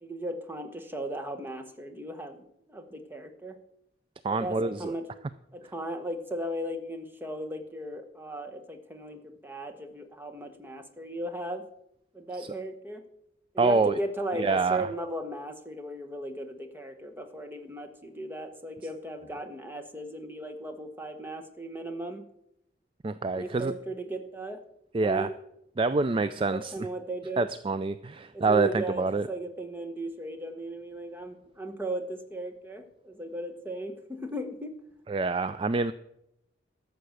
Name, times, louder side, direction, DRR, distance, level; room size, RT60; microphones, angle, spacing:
voice 1, 0.0-2.4 2.7-3.6 4.3-5.1 5.5-11.6 12.1-13.0 13.5-22.3 23.3-24.6 25.0-25.3 26.5-27.5 28.3-34.8, right 1 dB, 10° right, 6 dB, 1.0 m, -36 dB
voice 2, 4.2-4.9 12.4-12.5 13.6-14.0 14.3-14.9 23.0-23.7 24.9-25.3 25.8-26.9 27.4-29.3 35.1-35.9, right 3 dB, 30° right, 13 dB, 0.3 m, -26 dB
13.0 x 6.9 x 6.4 m, 0.80 s
head